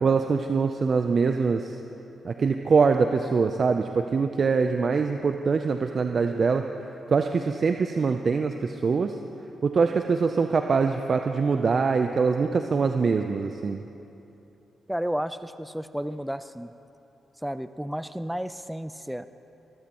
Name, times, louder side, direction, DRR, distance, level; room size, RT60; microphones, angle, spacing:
voice 1, 0.0-1.8 2.2-6.6 7.1-9.1 9.6-13.8, right 5 dB, 55° right, 6 dB, 0.6 m, -23 dB
voice 2, 14.9-16.7 17.4-19.3, equal, 5° right, 12 dB, 0.5 m, -32 dB
23.5 x 14.0 x 3.0 m, 2.9 s
hypercardioid pair, 45°, 0 cm